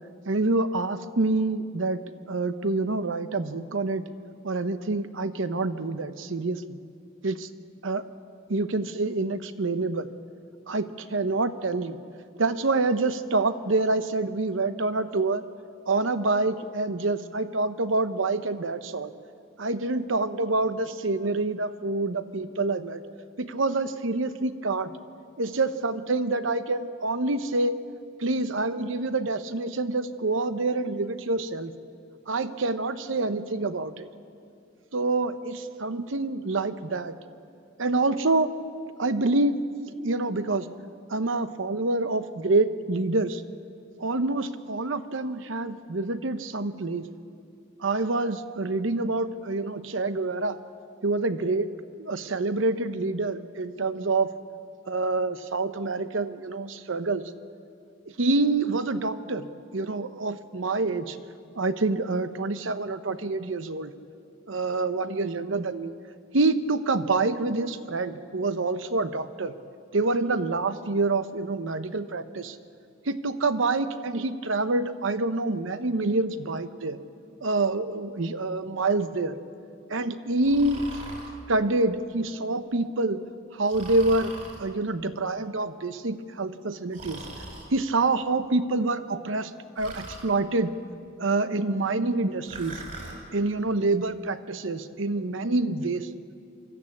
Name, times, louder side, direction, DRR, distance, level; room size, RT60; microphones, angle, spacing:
voice 1, 0.3-2.0 2.3-4.0 4.4-6.8 7.2-7.5 7.8-8.0 8.5-10.1 10.7-12.0 12.4-15.4 15.9-19.1 19.6-23.0 23.4-24.9 25.4-27.7 28.2-31.7 32.3-34.1 34.9-37.1 37.8-38.5 39.0-39.6 40.0-40.7 41.1-43.4 44.0-47.0 47.8-50.6 51.0-51.7 52.0-54.3 54.9-57.3 58.2-59.5 59.7-61.2 61.6-63.9 64.5-65.9 66.3-69.5 69.9-72.6 73.1-77.0 77.4-79.4 79.9-80.9 81.5-83.2 83.5-84.3 84.6-87.2 87.7-89.5 89.8-90.7 91.2-92.8 93.3-96.1, right 3 dB, 75° right, 11 dB, 0.9 m, -27 dB
Breathing, 80.4-81.3 83.7-84.6 86.9-87.7 89.8-90.3 92.5-93.2, right 2 dB, 40° right, 4.5 m, -40 dB
24.5 x 13.5 x 8.5 m, 2.5 s
head